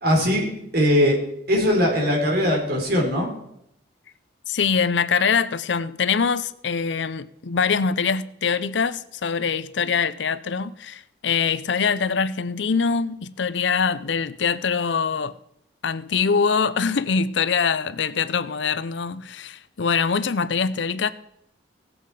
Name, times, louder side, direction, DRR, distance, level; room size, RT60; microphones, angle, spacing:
voice 1, 0.0-0.5 0.7-1.2 1.5-3.3, equal, 60° right, 3.9 m, -20 dB
voice 2, 4.5-15.3 15.8-21.1, left 5 dB, 70° left, 0.6 m, -23 dB
17.5 x 8.0 x 4.9 m
head